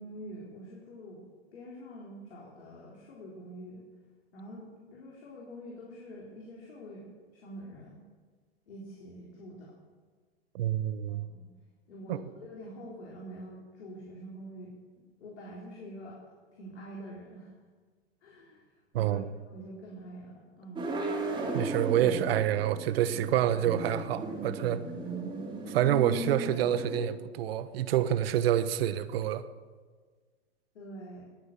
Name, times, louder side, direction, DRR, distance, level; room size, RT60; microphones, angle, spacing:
voice 1, 0.0-3.8 4.3-8.0 8.7-9.7 11.1-11.5 11.9-16.2 16.6-17.5 18.2-18.6 19.0-19.2 19.5-21.1 25.0-25.3 30.7-31.3, right 1 dB, 75° left, -3 dB, 3.9 m, -46 dB
voice 2, 10.5-11.3 12.1-12.2 18.9-19.3 21.5-24.8 25.7-29.4, right 11 dB, 60° right, 13 dB, 1.2 m, -27 dB
sound 1, 20.7-27.1, right 2 dB, 15° right, 2.9 m, -36 dB
19.5 x 9.7 x 7.3 m, 1.5 s
hypercardioid pair, 120°, 34 cm